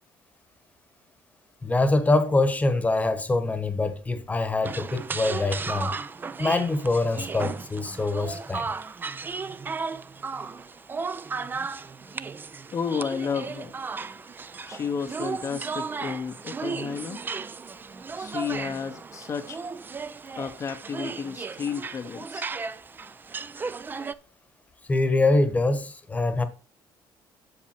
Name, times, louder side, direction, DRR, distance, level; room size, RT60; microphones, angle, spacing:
voice 1, 1.6-5.9 6.4-8.6 24.9-26.4, left 2 dB, 15° left, 1.1 m, -24 dB
sound 1, 4.6-24.2, right 4 dB, 20° right, 0.4 m, -35 dB
voice 2, 12.7-13.7 14.7-17.2 18.1-19.6 20.4-22.5, left 6 dB, 35° left, 0.7 m, -32 dB
7.5 x 6.7 x 4.3 m
cardioid pair, 105°, 9 cm